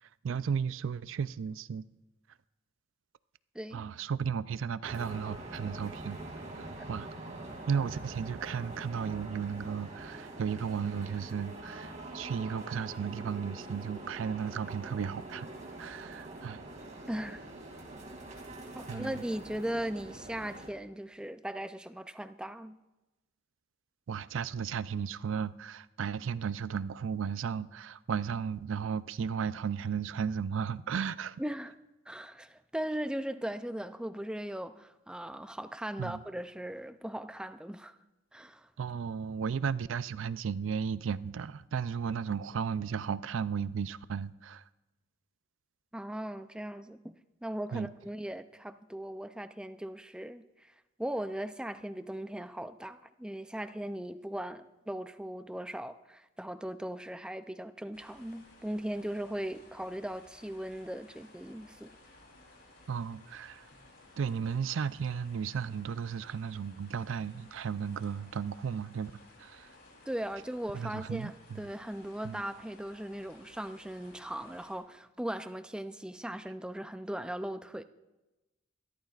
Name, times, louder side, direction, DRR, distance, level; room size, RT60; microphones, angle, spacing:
voice 1, 0.2-1.8 3.7-6.2 6.5-7.1 7.7-15.5 15.8-16.6 18.9-19.2 24.1-31.4 36.0-36.2 38.8-44.6 47.7-47.9 62.9-63.6 64.2-69.1 69.4-69.7 70.7-71.6 72.2-72.4, right 6 dB, 70° right, 0.4 m, -34 dB
voice 2, 3.5-3.8 17.1-17.4 18.8-22.8 31.4-31.7 32.1-38.0 38.3-38.7 45.9-50.7 51.0-61.9 70.1-77.8, right 1 dB, 5° right, 0.4 m, -38 dB
sound 1, 4.8-20.7, right 2 dB, 40° right, 2.5 m, -44 dB
sound 2, 57.9-74.8, left 2 dB, 55° left, 3.5 m, -58 dB
26.5 x 13.0 x 2.4 m
head